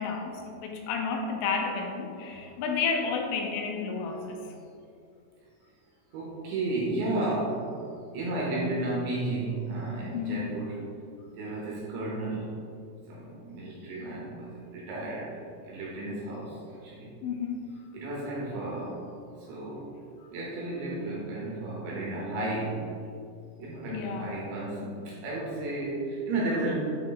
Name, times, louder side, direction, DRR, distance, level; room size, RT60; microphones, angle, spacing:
voice 1, 0.0-4.5 10.1-10.6 17.2-17.8 23.9-24.4, left 5 dB, 80° left, 2 dB, 2.9 m, -31 dB
voice 2, 6.1-7.7 8.1-10.8 11.3-12.6 13.1-17.1 17.9-19.0 19.4-19.9 20.3-22.9 23.6-26.7, right 2 dB, 75° right, -4 dB, 2.7 m, -33 dB
9.2 x 3.1 x 3.9 m, 2.4 s
omnidirectional pair, 5.9 m